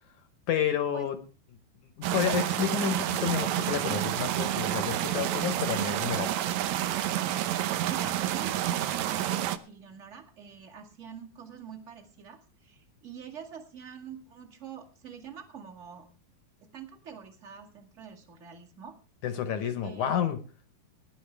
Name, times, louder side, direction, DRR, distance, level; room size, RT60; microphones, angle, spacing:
voice 1, 0.5-1.2 2.0-6.3 19.2-20.4, left 9 dB, 65° left, 10 dB, 2.1 m, -30 dB
sound 1, 2.0-9.6, right 12 dB, 80° right, 1.6 m, -29 dB
voice 2, 7.8-16.1 16.7-19.0 19.8-20.3, right 7 dB, 25° right, 2 dB, 1.6 m, -46 dB
19.5 x 11.0 x 3.4 m, 0.36 s
omnidirectional pair, 4.4 m